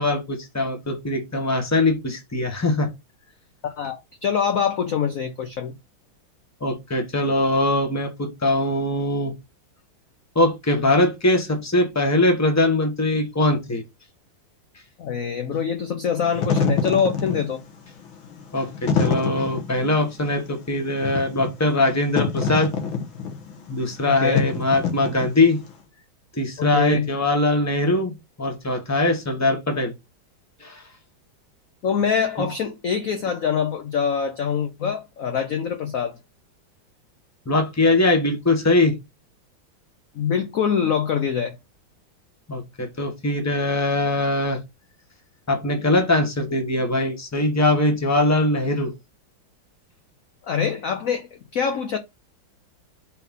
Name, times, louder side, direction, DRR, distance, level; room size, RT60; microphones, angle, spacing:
voice 1, 0.0-2.9 6.6-9.3 10.3-13.8 18.5-22.7 23.7-25.6 26.4-29.9 30.6-30.8 32.4-32.5 37.5-39.0 42.5-44.6 45.5-48.9, left 2 dB, 10° left, 1.1 m, -21 dB
voice 2, 3.6-5.7 15.0-17.6 24.1-24.5 26.6-27.1 31.8-36.1 40.2-41.5 50.5-52.0, left 7 dB, 60° left, 0.9 m, -24 dB
Wind / Fire, 16.2-25.7, left 5 dB, 85° left, 2.0 m, -26 dB
4.5 x 3.9 x 5.5 m
omnidirectional pair, 2.2 m